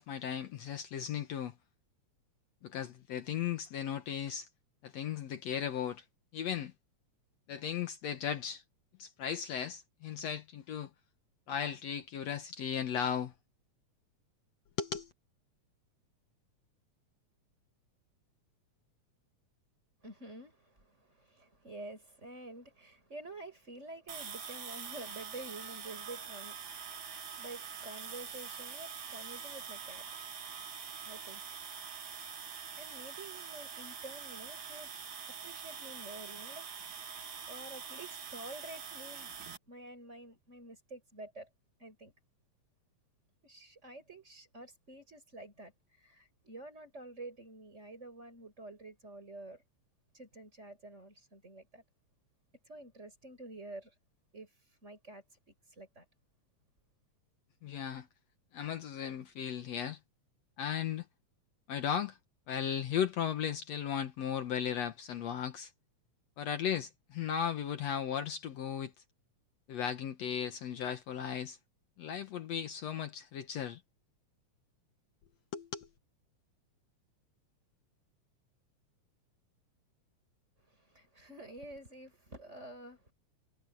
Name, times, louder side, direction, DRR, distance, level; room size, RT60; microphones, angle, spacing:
voice 1, 0.0-1.6 2.6-4.5 4.8-6.0 6.3-6.7 7.5-8.6 9.0-10.9 11.5-13.3 14.8-15.1 57.6-58.1 58.5-60.0 60.6-61.1 61.7-62.2 62.5-65.7 66.4-68.9 69.7-71.6 72.0-73.8 75.5-75.9, left 8 dB, 65° left, 2.2 m, -36 dB
voice 2, 20.0-30.2 31.0-31.4 31.7-32.0 32.8-34.9 35.4-37.1 37.5-39.4 39.7-41.5 41.8-42.1 43.4-45.7 46.0-49.6 50.1-51.8 52.7-53.9 54.3-54.5 54.8-56.0 80.6-83.1, right 2 dB, 20° right, 6.7 m, -49 dB
sound 1, 24.1-39.6, right 6 dB, 45° right, 2.2 m, -45 dB
omnidirectional pair, 3.4 m